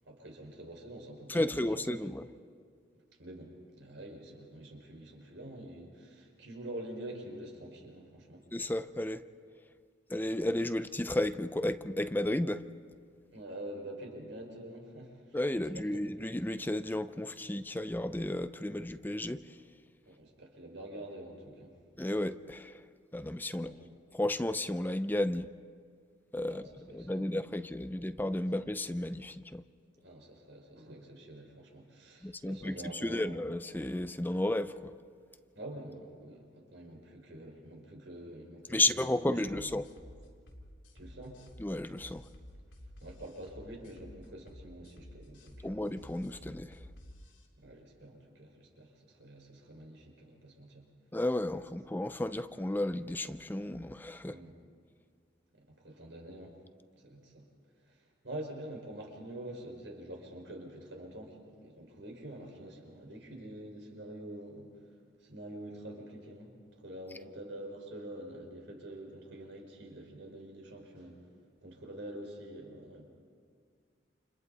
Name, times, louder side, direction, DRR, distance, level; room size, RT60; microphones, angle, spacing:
voice 1, 0.1-2.0 3.2-8.4 13.3-16.1 20.0-21.7 23.6-23.9 26.5-27.3 30.0-33.3 35.6-38.9 39.4-39.7 40.9-41.4 43.0-45.8 47.6-50.9 54.2-54.6 55.5-56.5 57.0-57.4 57.8-58.0 58.2-64.7 65.2-66.6 66.8-71.2 71.6-73.0, right 1 dB, 75° right, 5.3 m, -46 dB
voice 2, 1.3-2.3 8.5-9.2 10.1-12.6 15.3-19.6 22.0-22.9 23.1-23.8 24.1-25.5 26.3-29.6 32.2-34.9 38.7-39.9 41.6-42.2 45.6-46.8 51.1-54.4, left 1 dB, 10° left, 0.5 m, -33 dB
sound 1, 39.5-47.5, equal, 80° left, 3.3 m, -52 dB
29.5 x 27.5 x 4.2 m
head